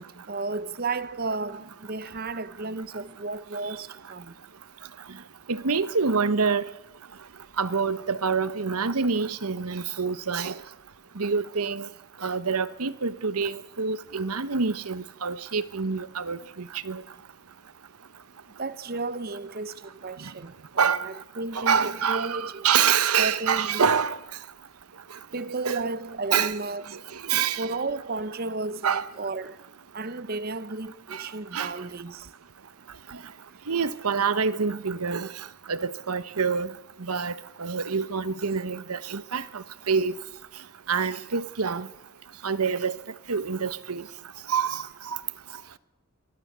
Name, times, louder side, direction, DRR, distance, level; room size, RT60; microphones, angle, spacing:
voice 1, 0.0-4.3 18.6-22.7 23.0-23.9 25.3-27.0 27.6-29.6 29.9-32.3, right 3 dB, 40° right, 0.8 m, -33 dB
voice 2, 5.5-6.6 7.6-10.5 11.2-11.9 12.2-17.0 20.8-21.1 21.5-24.2 25.6-25.8 26.3-26.5 27.3-27.7 28.8-29.0 31.1-31.2 31.5-31.7 33.7-35.3 35.7-36.7 37.0-37.3 37.6-40.2 40.9-41.9 42.4-43.0 43.3-44.0 44.5-45.2, right 5 dB, 85° right, 1.0 m, -26 dB
24.0 x 22.0 x 8.1 m
head